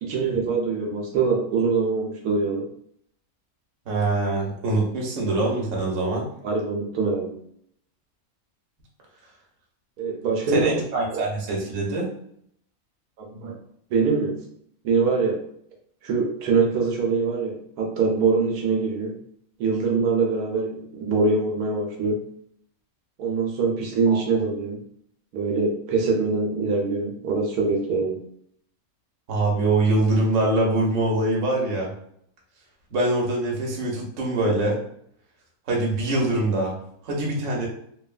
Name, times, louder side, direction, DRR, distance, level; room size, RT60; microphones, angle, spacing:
voice 1, 0.0-2.7 6.4-7.3 10.0-10.8 11.1-11.2 13.2-13.6 13.9-14.4 14.8-15.4 16.0-19.1 19.6-22.2 23.2-24.8 25.3-28.2 37.2-37.3, right 4 dB, 90° right, 0 dB, 1.1 m, -24 dB
voice 2, 3.9-6.2 10.5-12.1 24.1-24.2 29.3-31.9 32.9-34.8 35.7-36.8 37.0-37.7, right 2 dB, 60° right, -2 dB, 1.1 m, -23 dB
3.0 x 2.2 x 2.3 m, 0.69 s
omnidirectional pair, 1.5 m